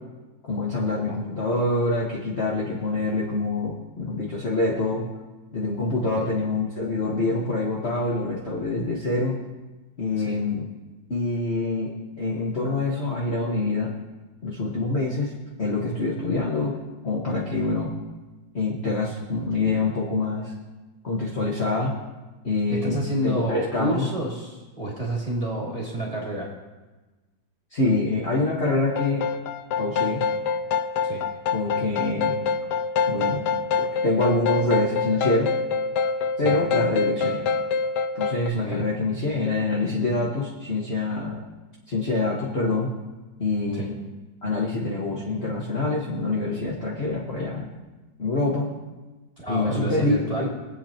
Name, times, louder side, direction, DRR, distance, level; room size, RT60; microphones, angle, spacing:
voice 1, 0.4-5.0 5.5-9.4 10.0-10.7 11.1-13.9 14.4-15.3 15.6-16.8 17.0-17.9 18.5-20.5 21.0-21.9 22.4-23.0 23.2-24.1 27.7-29.2 29.8-30.2 31.5-32.4 33.1-33.4 33.8-35.5 36.4-37.4 38.1-41.4 41.9-42.9 43.4-43.9 44.4-47.8 48.2-48.7 49.5-50.5, left 2 dB, 35° left, -4 dB, 1.6 m, -25 dB
voice 2, 22.7-26.5 31.0-31.2 36.4-36.6 38.5-38.9 43.7-43.9 49.4-50.5, right 1 dB, 20° right, -4 dB, 2.3 m, -29 dB
sound 1, 29.0-38.5, left 5 dB, 75° left, 1.1 m, -25 dB
24.0 x 8.3 x 2.9 m, 1.2 s
omnidirectional pair, 2.0 m